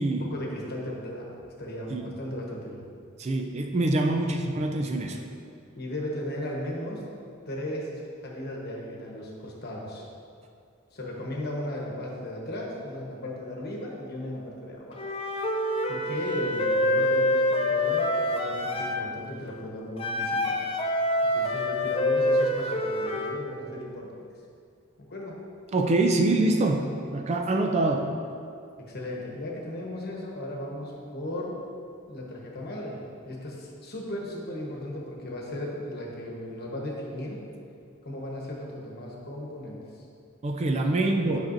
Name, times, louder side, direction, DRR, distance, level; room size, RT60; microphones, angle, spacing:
voice 1, 0.1-1.3 1.6-2.8 4.1-4.4 5.8-7.0 7.5-10.1 10.9-15.2 15.9-20.6 21.2-24.1 25.1-25.4 28.8-31.5 32.1-37.4 38.0-40.0 41.2-41.4, left 1 dB, 50° left, -2 dB, 1.1 m, -36 dB
voice 2, 3.2-5.2 25.7-28.1 40.4-41.4, right 2 dB, 30° right, 3 dB, 0.4 m, -25 dB
Wind instrument woodwind instrument, 15.0-19.0 20.0-23.4, left 1 dB, 30° left, 0.4 m, -26 dB
8.7 x 5.7 x 2.6 m, 2.4 s
head